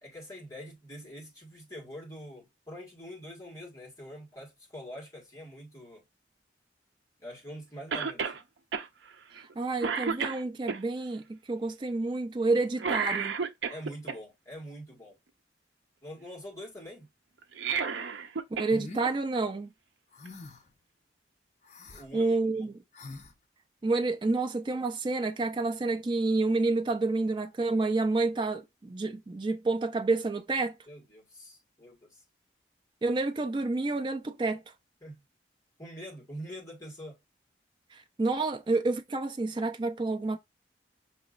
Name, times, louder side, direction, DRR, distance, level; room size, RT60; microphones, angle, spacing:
voice 1, 0.0-6.1 7.2-8.4 13.7-15.2 16.0-17.1 21.9-22.7 30.9-32.2 35.0-35.2 35.8-37.2, equal, 15° left, 1.6 m, -45 dB
Cough, 7.9-8.4 8.7-8.9 9.3-9.5 9.8-10.8 12.8-14.2 17.4-18.7 19.0-19.1 20.2-20.3, right 5 dB, 80° right, 0.5 m, -31 dB
voice 2, 9.6-13.4 18.5-19.7 22.1-22.7 23.8-30.8 33.0-34.6 37.9-40.4, right 3 dB, 25° right, 0.3 m, -29 dB
sound 1, 18.7-19.1 20.1-20.7 21.6-22.1 22.9-23.3, left 2 dB, 40° left, 0.6 m, -44 dB
6.0 x 2.9 x 2.4 m
head